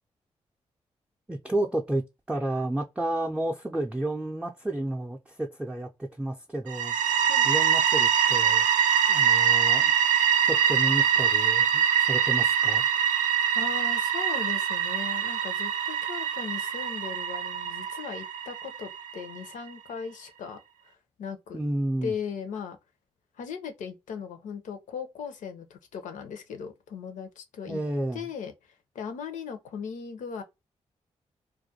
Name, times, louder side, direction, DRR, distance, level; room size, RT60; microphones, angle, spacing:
voice 1, 1.3-8.7 9.1-9.9 10.4-12.9 21.5-22.1 27.7-28.3, right 1 dB, 10° right, 0.5 m, -31 dB
sound 1, 6.7-19.4, right 8 dB, 80° right, 0.4 m, -24 dB
voice 2, 13.5-20.6 20.8-20.9 21.2-21.6 22.0-22.8 23.4-27.8 28.1-30.4, left 6 dB, 75° left, 0.6 m, -38 dB
2.3 x 2.2 x 2.7 m
supercardioid pair, 45°, 13 cm